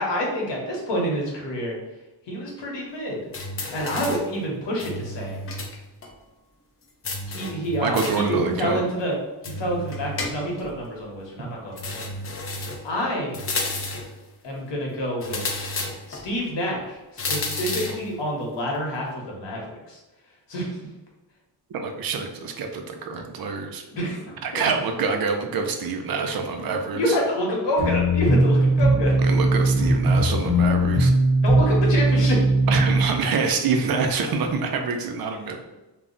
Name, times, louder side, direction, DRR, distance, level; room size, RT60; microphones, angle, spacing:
voice 1, 0.0-1.8 2.3-3.2 3.7-5.4 7.3-9.2 9.4-12.1 12.8-13.4 14.4-15.4 16.1-20.0 20.5-20.7 23.9-24.7 26.9-29.2 31.4-32.4, equal, 85° left, -2 dB, 1.0 m, -27 dB
sound 1, 3.3-4.3 4.8-5.8 6.0-6.1 7.0-8.3 9.4-10.7 11.8-12.9 13.3-14.1 15.2-16.2 17.2-18.1, left 2 dB, 35° left, 0.4 m, -31 dB
voice 2, 7.8-8.8 21.7-23.8 24.4-27.2 29.2-31.1 32.7-35.6, right 5 dB, 60° right, 4 dB, 0.5 m, -26 dB
sound 2, 27.8-33.1, right 1 dB, 15° right, 0.7 m, -19 dB
2.3 x 2.0 x 3.7 m, 1.1 s
wide cardioid pair, 125°, 42 cm